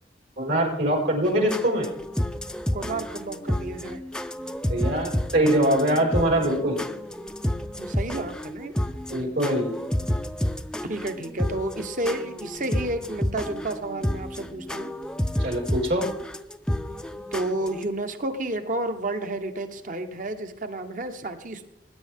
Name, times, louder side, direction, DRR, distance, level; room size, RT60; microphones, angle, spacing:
voice 1, 0.4-1.9 4.7-6.8 9.1-9.8 15.4-16.1, right 1 dB, 75° right, -2 dB, 5.5 m, -23 dB
sound 1, 1.2-17.8, left 1 dB, 5° left, 0.5 m, -30 dB
voice 2, 2.7-4.0 7.8-8.7 10.8-14.9 17.3-21.6, right 2 dB, 45° right, 8 dB, 1.2 m, -31 dB
20.5 x 10.0 x 3.7 m, 0.87 s
head